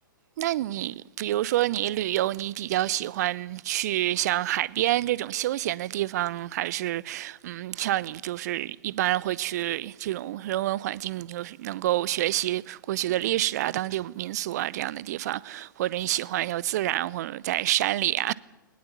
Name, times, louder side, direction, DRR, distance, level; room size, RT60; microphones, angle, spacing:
voice 1, 0.4-18.3, right 14 dB, 50° right, 0.8 m, -28 dB
20.5 x 20.0 x 8.5 m
figure-of-eight pair, 105°, 11 cm